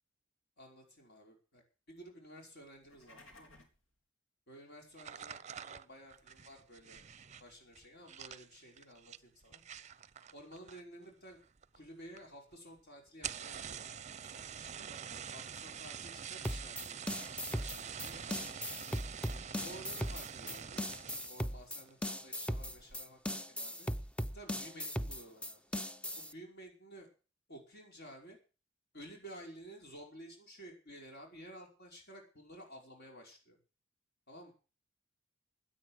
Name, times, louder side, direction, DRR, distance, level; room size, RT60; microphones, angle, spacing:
voice 1, 0.6-1.6 1.9-3.5 4.5-9.6 10.3-11.4 11.7-15.0 15.3-17.0 17.2-18.5 19.6-23.9 24.3-25.6 26.2-27.1 27.5-28.4 28.9-33.6 34.3-34.5, right 1 dB, 55° left, 1 dB, 5.3 m, -53 dB
sound 1, 2.7-3.8, left 2 dB, 75° left, 4.1 m, -58 dB
sound 2, 4.9-11.1 11.3-11.9 12.2-12.3 12.5-12.6 13.1-21.4 21.9-22.2 22.6-23.0, right 7 dB, 35° right, 0.7 m, -46 dB
sound 3, 16.4-26.3, equal, 5° left, 0.7 m, -38 dB
17.0 x 10.0 x 6.4 m, 0.35 s
head